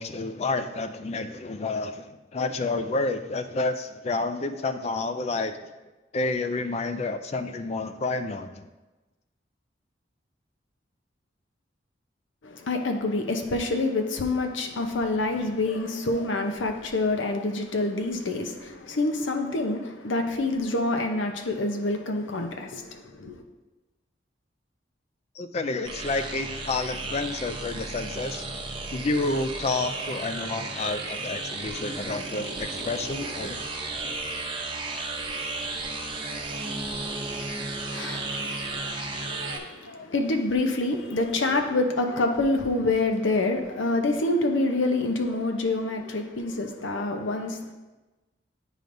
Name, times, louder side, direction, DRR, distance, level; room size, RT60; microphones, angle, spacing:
voice 1, 0.0-5.7 6.1-8.7 25.4-28.4 28.9-33.7 34.0-34.2, left 3 dB, 35° left, 0.3 m, -29 dB
voice 2, 12.4-23.4 37.9-47.7, left 2 dB, 85° left, 0.7 m, -27 dB
sound 1, 25.8-39.6, right 3 dB, 25° right, 0.6 m, -34 dB
9.1 x 5.0 x 2.6 m
head